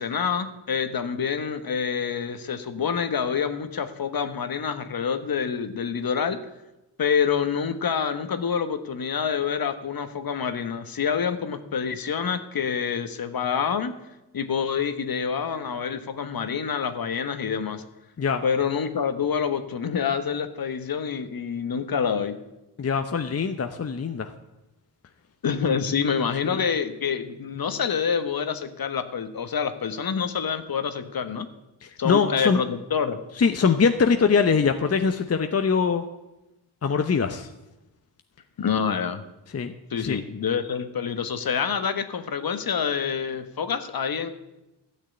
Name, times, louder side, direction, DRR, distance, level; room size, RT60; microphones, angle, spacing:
voice 1, 0.0-6.4 7.0-13.9 14.3-17.8 18.4-22.3 25.4-31.5 32.0-33.2 38.6-39.2 39.9-44.3, left 6 dB, 50° left, 9 dB, 1.3 m, -27 dB
voice 2, 22.8-24.3 26.4-26.6 31.8-32.6 33.4-36.0 36.8-37.5 39.5-39.7 40.0-40.2, left 5 dB, 30° left, 7 dB, 0.9 m, -22 dB
12.5 x 6.5 x 9.6 m, 0.99 s
supercardioid pair, 50°, 46 cm